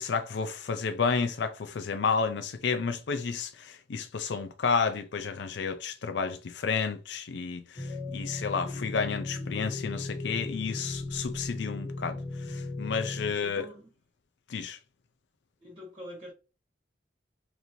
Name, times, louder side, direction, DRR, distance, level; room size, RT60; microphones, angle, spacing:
voice 1, 0.0-12.2 12.5-13.7 14.5-14.8, left 5 dB, 70° left, 0.4 m, -31 dB
sound 1, 7.8-13.3, left 2 dB, 35° left, 1.3 m, -36 dB
voice 2, 10.5-10.9 13.4-13.8 15.6-16.3, equal, 30° right, 1.2 m, -46 dB
4.1 x 3.0 x 2.7 m
head